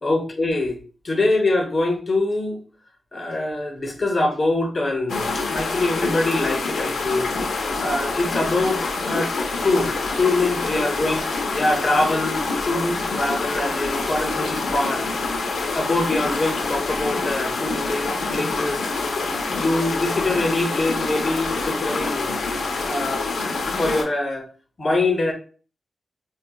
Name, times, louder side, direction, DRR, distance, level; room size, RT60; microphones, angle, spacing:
voice 1, 0.0-0.7 1.0-2.6 3.1-7.3 7.8-8.8 9.1-9.3 9.6-9.9 10.2-11.2 11.5-15.1 15.7-18.9 19.5-22.4 22.8-23.3 23.8-24.4 24.8-25.3, left 2 dB, 35° left, 0.9 m, -24 dB
sound 1, 5.1-24.0, left 3 dB, 80° left, 0.7 m, -26 dB
4.8 x 2.4 x 2.2 m
wide cardioid pair, 95°, 0 cm